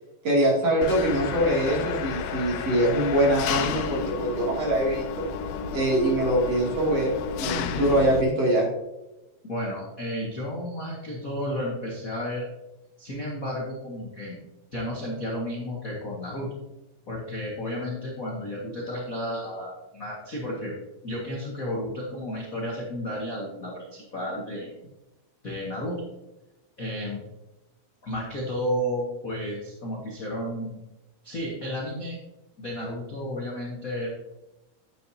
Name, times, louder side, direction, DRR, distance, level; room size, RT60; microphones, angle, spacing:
voice 1, 0.2-5.2 5.7-8.7, right 1 dB, 45° right, -3 dB, 3.6 m, -23 dB
Engine, 0.8-8.2, left 7 dB, 85° left, 2.4 m, -32 dB
voice 2, 9.4-12.5 13.0-14.4 14.7-16.5 17.1-20.7 21.0-24.7 25.4-26.0 26.8-27.2 28.0-30.8 31.2-32.2 32.6-34.1, equal, 40° left, -4 dB, 1.3 m, -32 dB
10.5 x 9.0 x 2.8 m, 0.97 s
omnidirectional pair, 4.2 m